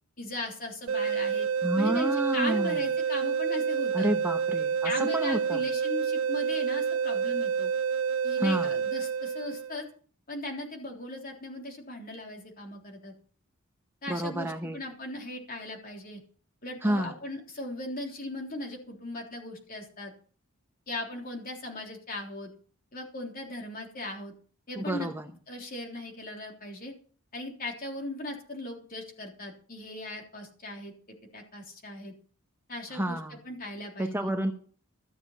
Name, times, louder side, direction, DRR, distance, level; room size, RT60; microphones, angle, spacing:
voice 1, 0.2-1.5 1.8-4.1 4.8-7.7 8.2-9.9 10.3-13.1 14.0-16.2 16.6-20.1 20.9-22.5 22.9-24.3 24.7-25.1 25.5-26.9 27.3-30.9 31.3-32.1 32.7-34.2, left 2 dB, 45° left, 1 dB, 3.5 m, -38 dB
sound 1, 0.9-9.8, right 6 dB, 70° right, 0.5 m, -28 dB
voice 2, 1.6-2.8 3.9-5.6 8.4-8.7 14.1-14.8 16.8-17.2 24.8-25.3 32.9-33.4 34.0-34.5, right 1 dB, 10° right, 5 dB, 0.9 m, -29 dB
14.0 x 7.4 x 7.3 m, 0.43 s
head